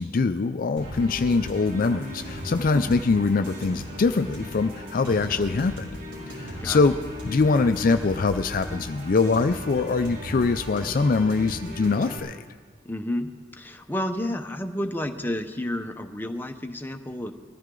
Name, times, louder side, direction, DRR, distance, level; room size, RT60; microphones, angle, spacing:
voice 1, 0.0-5.9 6.4-7.0 7.2-12.4, left 4 dB, 45° left, 9 dB, 0.4 m, -23 dB
sound 1, 0.8-12.2, left 1 dB, 70° right, 4.7 m, -37 dB
voice 2, 12.8-17.3, left 1 dB, 10° left, 5 dB, 0.7 m, -31 dB
21.0 x 14.0 x 3.8 m, 1.5 s
head